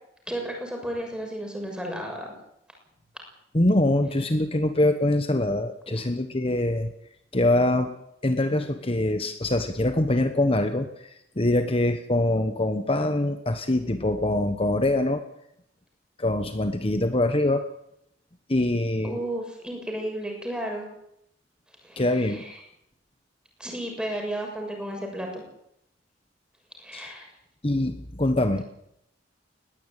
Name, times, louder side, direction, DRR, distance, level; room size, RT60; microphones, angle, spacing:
voice 1, 0.3-2.3 19.0-20.9 21.8-22.6 23.6-25.4 26.8-27.3, right 1 dB, 5° right, 2 dB, 6.8 m, -33 dB
voice 2, 3.5-6.9 7.3-8.0 8.2-15.2 16.2-17.6 18.5-19.2 22.0-22.4 26.9-27.1 27.6-28.6, left 1 dB, 30° left, 8 dB, 1.2 m, -24 dB
20.5 x 16.5 x 9.2 m, 0.78 s
head